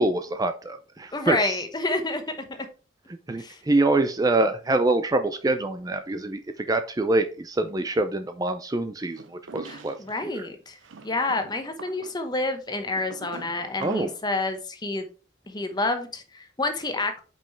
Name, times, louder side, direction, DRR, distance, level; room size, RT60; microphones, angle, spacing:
voice 1, 0.0-1.6 3.3-10.0 10.2-10.5 13.8-14.1, right 2 dB, 20° right, 8 dB, 0.4 m, -25 dB
voice 2, 1.1-2.4 3.4-3.6 9.7-10.8 11.0-15.1 15.5-17.2, left 2 dB, 20° left, 6 dB, 1.0 m, -28 dB
sound 1, 9.1-10.2 10.8-14.3, right 4 dB, 90° right, 0.6 m, -44 dB
5.5 x 5.3 x 4.4 m, 0.36 s
head